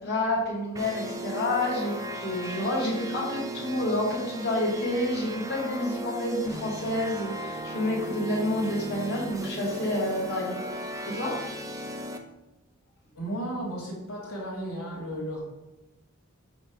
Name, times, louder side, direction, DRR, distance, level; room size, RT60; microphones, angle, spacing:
voice 1, 0.0-10.6 11.0-11.3, left 1 dB, 50° left, -4 dB, 2.2 m, -29 dB
sound 1, 0.8-12.2, right 1 dB, 15° right, 0.4 m, -37 dB
voice 2, 13.1-15.4, right 1 dB, 85° left, -3 dB, 1.9 m, -34 dB
5.7 x 3.2 x 5.6 m, 1.0 s
head